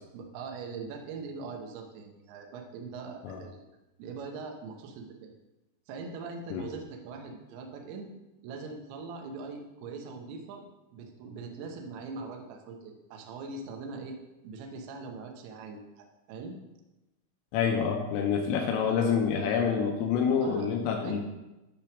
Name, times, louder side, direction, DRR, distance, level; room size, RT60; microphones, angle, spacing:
voice 1, 0.1-5.4 5.9-8.1 8.4-10.6 10.9-14.2 14.4-16.6 20.4-20.7 21.0-21.2, right 4 dB, 85° right, 2 dB, 2.2 m, -42 dB
voice 2, 17.5-21.2, left 6 dB, 85° left, 1 dB, 3.3 m, -27 dB
10.0 x 3.4 x 6.0 m, 1.0 s
omnidirectional pair, 6.0 m